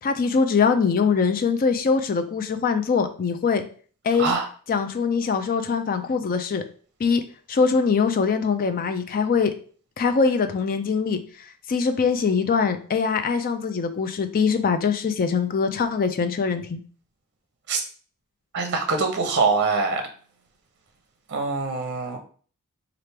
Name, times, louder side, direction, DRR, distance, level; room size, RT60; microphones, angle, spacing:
voice 1, 0.0-3.6 4.0-4.3 4.7-6.6 7.0-7.2 7.5-9.5 10.0-11.2 11.7-16.8, left 5 dB, 40° left, 8 dB, 0.4 m, -22 dB
voice 2, 18.5-20.0 21.3-22.2, right 4 dB, 50° right, 5 dB, 0.6 m, -23 dB
4.4 x 2.5 x 3.3 m, 0.43 s
head